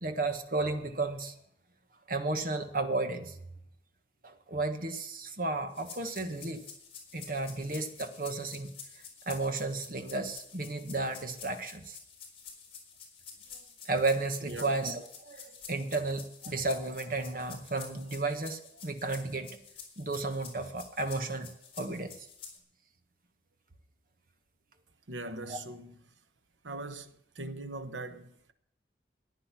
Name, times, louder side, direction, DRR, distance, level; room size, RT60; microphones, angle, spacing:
voice 1, 0.0-1.3 2.1-3.4 4.2-6.6 7.1-8.7 9.3-12.0 13.9-19.6 20.0-21.5 21.8-22.3 25.5-25.6, right 3 dB, 50° right, 1.4 m, -33 dB
sound 1, 5.7-22.6, left 6 dB, 30° left, 4.0 m, -49 dB
voice 2, 25.1-26.0 26.6-28.5, right 2 dB, 90° right, 1.1 m, -41 dB
14.5 x 10.0 x 6.0 m
head